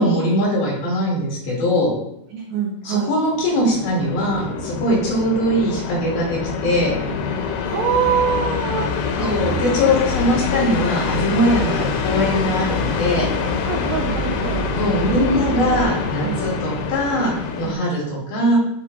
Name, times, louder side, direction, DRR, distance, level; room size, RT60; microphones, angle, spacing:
voice 1, 0.0-1.9 2.8-6.9 9.2-13.3 14.8-18.6, equal, 65° left, -4 dB, 4.1 m, -21 dB
voice 2, 2.3-3.1 7.6-9.4 11.4-11.7 13.6-14.7 15.0-16.5 17.6-17.9, right 7 dB, 80° right, 0 dB, 1.8 m, -25 dB
sound 1, 3.3-17.8, left 5 dB, 90° left, 2.9 m, -25 dB
sound 2, 7.8-15.8, equal, 65° right, 3.8 m, -31 dB
8.7 x 4.2 x 4.0 m, 0.76 s
omnidirectional pair, 4.5 m